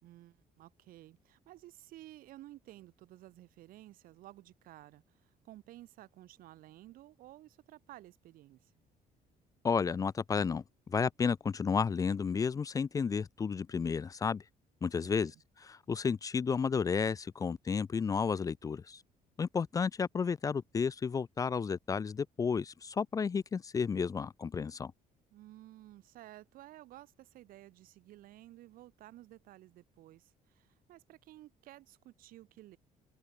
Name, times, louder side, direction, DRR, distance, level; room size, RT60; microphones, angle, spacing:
voice 1, 0.0-8.7 15.0-15.3 25.3-32.8, right 15 dB, 75° right, 2.9 m, -54 dB
voice 2, 9.6-10.6 10.9-14.4 14.8-15.3 15.6-19.0 19.4-24.9, left 6 dB, 25° left, 0.8 m, -32 dB
open air
cardioid pair, 175°, 15 cm